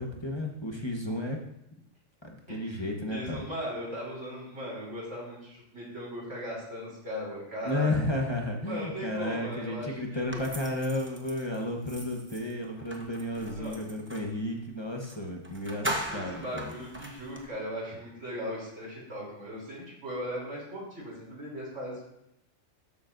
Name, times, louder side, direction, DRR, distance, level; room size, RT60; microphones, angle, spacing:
voice 1, 0.0-1.4 2.2-3.4 7.6-16.7, left 1 dB, 25° left, 1 dB, 0.9 m, -33 dB
voice 2, 2.5-2.8 3.1-7.9 8.7-10.5 13.5-13.9 16.1-22.0, equal, 60° right, -4 dB, 3.7 m, -38 dB
sound 1, 10.3-14.3 15.0-15.2 15.4-17.5, right 1 dB, 10° right, 0.7 m, -39 dB
12.5 x 7.0 x 2.6 m, 0.81 s
omnidirectional pair, 1.4 m